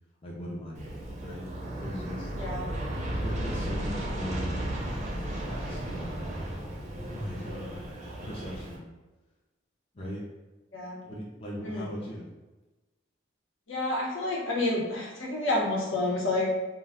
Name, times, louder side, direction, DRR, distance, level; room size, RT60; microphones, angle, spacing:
voice 1, 0.2-1.5 1.8-2.3 3.2-4.7 5.4-6.5 6.9-8.9 9.9-10.2 11.0-12.3, equal, 30° left, -4 dB, 0.4 m, -39 dB
Aircraft, 0.7-8.8, right 1 dB, 40° right, 0.5 m, -34 dB
voice 2, 2.3-2.7 10.7-11.0 11.6-11.8 13.7-16.5, left 2 dB, 85° left, -4 dB, 0.9 m, -29 dB
2.3 x 2.2 x 3.5 m, 1.1 s
head